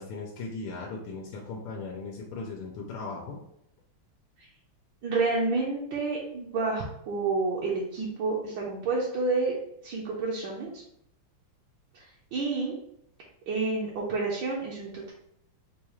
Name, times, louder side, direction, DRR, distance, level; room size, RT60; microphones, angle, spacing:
voice 1, 0.0-3.4, left 3 dB, 85° left, -1 dB, 1.5 m, -38 dB
voice 2, 5.0-9.5 9.8-10.8 11.9-12.0 12.3-12.8 13.5-15.1, right 3 dB, 70° right, -4 dB, 1.3 m, -29 dB
4.6 x 2.3 x 3.0 m, 0.74 s
omnidirectional pair, 2.3 m